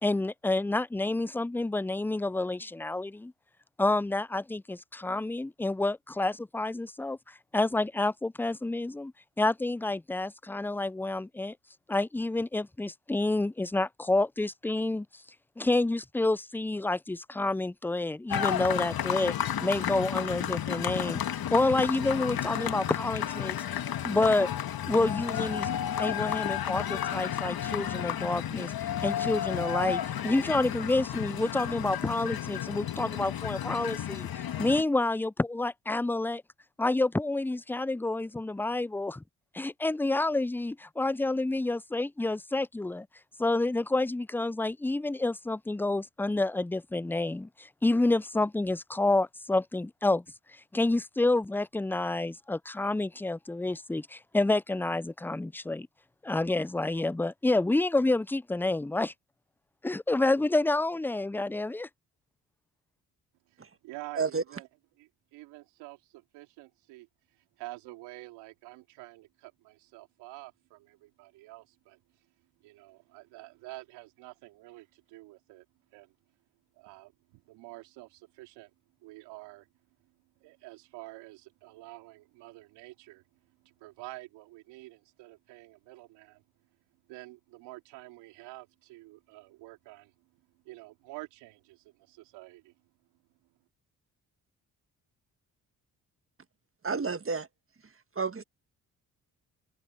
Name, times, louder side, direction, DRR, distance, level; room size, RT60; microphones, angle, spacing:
voice 1, 0.0-3.3 3.8-9.1 9.4-11.6 11.9-15.2 15.6-19.3 19.6-21.2 21.5-23.8 24.0-24.5 24.9-25.7 26.0-36.4 36.8-39.2 39.5-43.1 43.4-50.2 50.5-55.9 56.2-59.1 59.8-61.9, left 2 dB, 5° left, 0.5 m, -29 dB
sound 1, 18.3-34.8, left 10 dB, 60° left, 1.9 m, -32 dB
voice 2, 63.5-64.7 65.0-72.0 72.6-75.6 75.9-76.1 76.8-78.7 79.0-79.7 80.4-83.2 83.6-86.4 87.1-90.1 90.6-92.7, right 19 dB, 85° right, 2.6 m, -48 dB
voice 3, 96.8-97.5 98.1-98.4, right 5 dB, 30° right, 1.7 m, -30 dB
hypercardioid pair, 45°, 41 cm